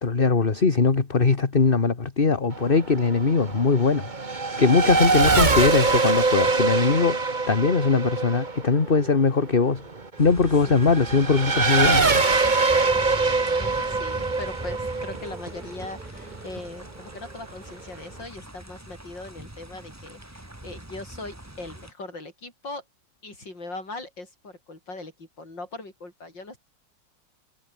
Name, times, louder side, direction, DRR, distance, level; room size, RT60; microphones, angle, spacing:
voice 1, 0.0-4.1 4.6-7.2 7.5-9.8 10.2-12.1, left 4 dB, 30° left, 1.8 m, -21 dB
Race car auto racing / Accelerating revving vroom, 2.5-16.6, right 3 dB, 25° right, 1.8 m, -24 dB
voice 2, 4.8-5.8 10.7-10.8 12.8-22.8 23.2-26.6, left 2 dB, 90° left, 7.3 m, -40 dB
sound 1, 10.2-21.9, right 1 dB, 10° right, 2.0 m, -41 dB
omnidirectional pair, 1.9 m